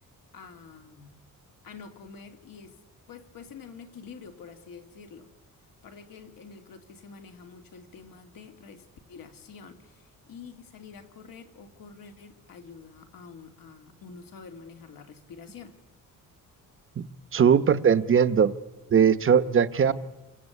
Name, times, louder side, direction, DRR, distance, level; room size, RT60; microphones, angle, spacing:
voice 1, 0.3-1.2 1.6-2.8 3.1-5.3 5.8-15.8, left 5 dB, 80° left, 2.8 m, -47 dB
voice 2, 17.3-18.5 18.9-19.9, right 7 dB, 40° right, 0.9 m, -20 dB
28.5 x 24.5 x 8.4 m
wide cardioid pair, 155°, 34 cm